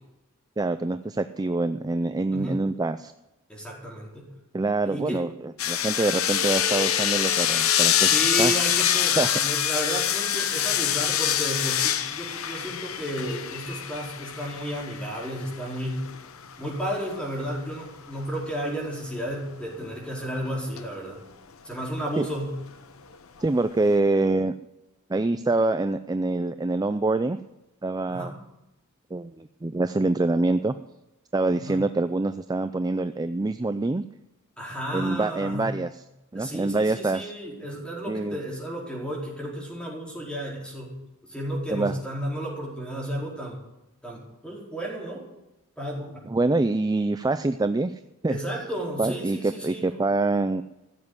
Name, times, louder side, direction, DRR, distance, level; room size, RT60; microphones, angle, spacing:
voice 1, 0.6-3.1 4.5-8.6 9.2-9.3 22.2-22.3 23.4-24.5 25.1-27.4 27.8-28.3 29.1-30.7 31.3-34.0 34.9-36.0 36.3-37.3 38.1-38.4 41.7-42.0 46.3-48.4 49.0-50.6, right 2 dB, 20° right, 10 dB, 0.4 m, -25 dB
voice 2, 2.3-2.6 3.5-4.3 4.8-5.2 8.0-16.1 16.6-21.2 21.6-22.6 28.1-28.3 31.6-31.8 34.6-35.7 36.3-41.0 41.2-43.6 44.0-45.2 45.8-46.3 48.3-50.0, equal, 5° left, -3 dB, 4.5 m, -33 dB
sound 1, 5.6-17.0 20.3-20.8 22.0-22.1, left 10 dB, 75° left, 0.9 m, -25 dB
15.5 x 7.4 x 9.8 m, 0.96 s
head